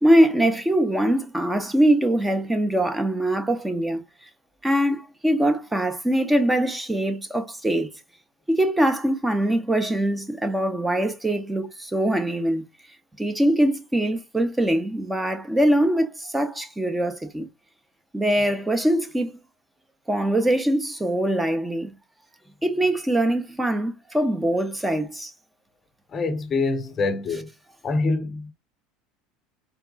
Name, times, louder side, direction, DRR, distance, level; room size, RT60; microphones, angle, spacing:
voice 1, 0.0-4.0 4.6-7.9 8.5-12.7 13.2-17.5 18.1-19.3 20.1-21.9 22.6-25.3, right 1 dB, 10° right, 0.8 m, -22 dB
voice 2, 26.1-27.5 27.8-28.5, left 3 dB, 30° left, 0.7 m, -25 dB
4.1 x 3.4 x 2.3 m
figure-of-eight pair, 70°, 0 cm